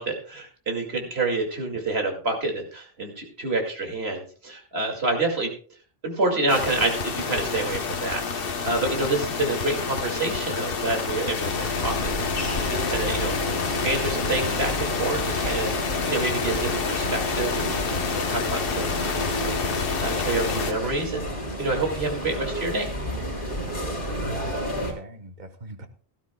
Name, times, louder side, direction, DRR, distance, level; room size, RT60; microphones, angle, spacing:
voice 1, 0.0-5.5 6.0-12.1 12.4-13.4 13.8-15.7 16.0-19.2 19.4-19.6 20.0-21.3 21.6-23.1, right 2 dB, 80° right, 2 dB, 2.6 m, -28 dB
sound 1, 6.5-20.7, left 5 dB, 65° left, 1.1 m, -28 dB
sound 2, 11.7-24.9, equal, 35° left, 3.5 m, -32 dB
voice 2, 23.6-25.9, right 2 dB, 45° right, 7 dB, 1.3 m, -41 dB
17.5 x 12.5 x 2.3 m, 0.42 s
omnidirectional pair, 1.0 m